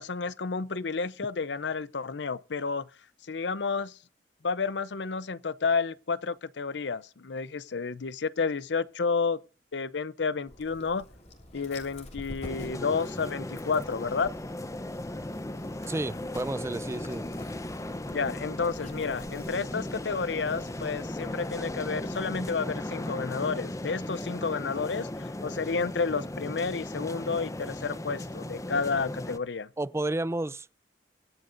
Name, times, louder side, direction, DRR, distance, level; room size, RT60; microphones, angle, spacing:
voice 1, 0.0-2.9 3.3-4.0 4.4-9.4 9.7-11.0 11.5-14.3 18.1-29.7, left 4 dB, 85° left, 0.7 m, -31 dB
Dog, 10.5-22.5, left 1 dB, 40° left, 3.1 m, -48 dB
sound 1, 12.5-29.4, left 1 dB, 20° left, 0.8 m, -37 dB
voice 2, 15.9-17.2 29.8-30.7, right 2 dB, 15° right, 0.5 m, -31 dB
23.0 x 8.8 x 2.6 m
head